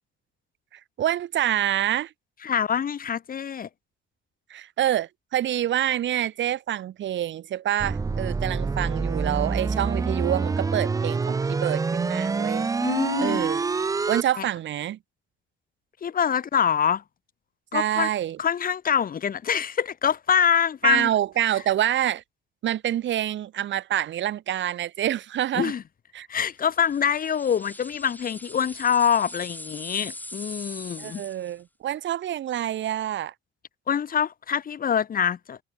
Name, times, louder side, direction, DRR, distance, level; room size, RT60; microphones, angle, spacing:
voice 1, 0.7-2.1 4.5-12.7 13.2-13.6 14.1-15.0 17.7-18.4 20.8-22.2 22.6-25.7 26.1-26.3 31.0-33.3, right 12 dB, 70° right, 1.4 m, -27 dB
voice 2, 2.4-3.7 12.8-13.4 14.4-14.5 16.0-17.0 17.7-18.1 18.4-21.1 25.6-25.8 26.3-31.2 33.9-35.6, left 8 dB, 45° left, 1.1 m, -25 dB
sound 1, 7.8-14.2, right 4 dB, 15° right, 0.4 m, -26 dB
sound 2, 26.8-31.6, left 1 dB, 10° left, 4.2 m, -41 dB
cardioid pair, 90°, 20 cm